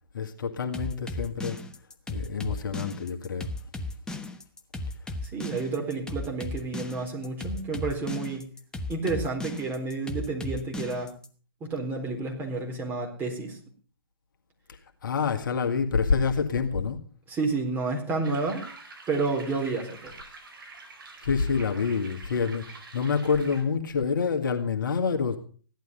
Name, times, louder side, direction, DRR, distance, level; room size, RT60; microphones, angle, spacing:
voice 1, 0.1-1.6 2.1-3.5 15.0-17.0 21.2-22.7 22.9-25.4, left 5 dB, 55° left, 5 dB, 2.0 m, -27 dB
sound 1, 0.7-11.3, left 2 dB, 5° left, 1.0 m, -35 dB
voice 2, 5.2-8.5 8.9-11.1 11.6-13.6 17.3-18.6 19.1-20.1, right 3 dB, 15° right, 1 dB, 4.1 m, -30 dB
sound 2, 18.2-23.6, right 3 dB, 60° right, 4.7 m, -46 dB
16.0 x 11.5 x 5.3 m, 0.42 s
figure-of-eight pair, 130°, 13 cm